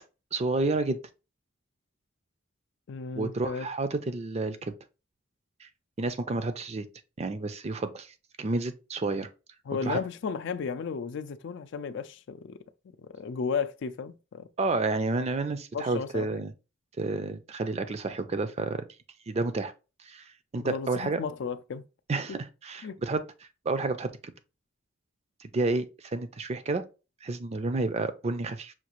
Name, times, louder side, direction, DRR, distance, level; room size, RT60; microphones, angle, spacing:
voice 1, 0.3-1.0 3.2-4.7 5.6-5.7 6.0-6.9 7.2-9.3 9.8-10.0 14.6-16.5 17.0-18.8 19.3-19.7 20.0-20.2 20.5-21.2 22.1-23.2 23.7-24.3 25.4-26.8 27.2-28.7, right 3 dB, 35° right, 0.4 m, -30 dB
voice 2, 2.9-3.7 9.7-12.6 13.0-14.5 15.7-16.4 20.6-21.8 22.8-23.0, left 5 dB, 65° left, 0.4 m, -34 dB
5.8 x 2.4 x 3.0 m
head